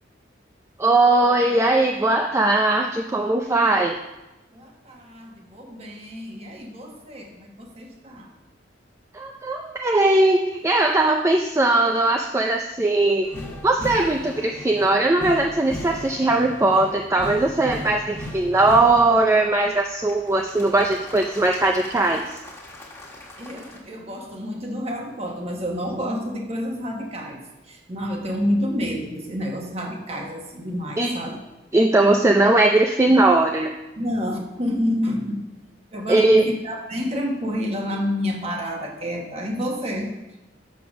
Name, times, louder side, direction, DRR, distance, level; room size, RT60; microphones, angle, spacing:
voice 1, 0.8-4.0 9.1-13.3 13.6-22.3 31.0-31.2 31.7-33.7 36.1-36.5, right 2 dB, 15° right, 2 dB, 0.4 m, -19 dB
voice 2, 4.5-8.3 23.4-31.4 34.0-35.4 35.9-40.1, equal, 35° right, 1 dB, 1.3 m, -29 dB
sound 1, 13.2-19.2 20.1-23.8, left 1 dB, 15° left, 1.6 m, -38 dB
6.9 x 6.8 x 6.1 m, 1.0 s
head